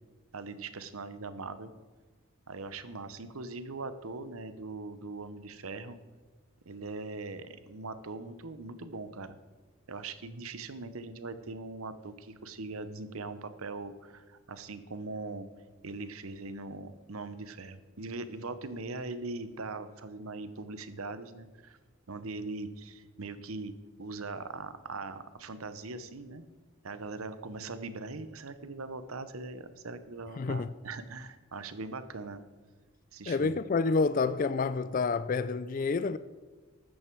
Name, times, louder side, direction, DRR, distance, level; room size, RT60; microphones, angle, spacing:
voice 1, 0.3-1.7 2.5-6.0 6.7-9.4 9.9-15.5 15.8-21.8 22.1-26.4 26.8-32.4 33.1-33.6, right 3 dB, 75° right, 0.9 m, -41 dB
voice 2, 30.4-30.7 33.3-36.2, left 4 dB, 40° left, 0.3 m, -28 dB
13.0 x 9.2 x 4.6 m
head